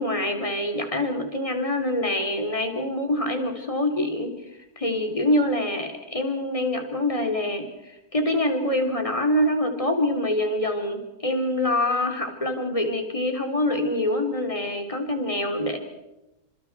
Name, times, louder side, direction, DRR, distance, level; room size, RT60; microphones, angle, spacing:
voice 1, 0.0-4.3 4.8-15.8, left 1 dB, 15° left, 5 dB, 3.0 m, -25 dB
28.5 x 26.5 x 4.7 m, 0.95 s
omnidirectional pair, 2.1 m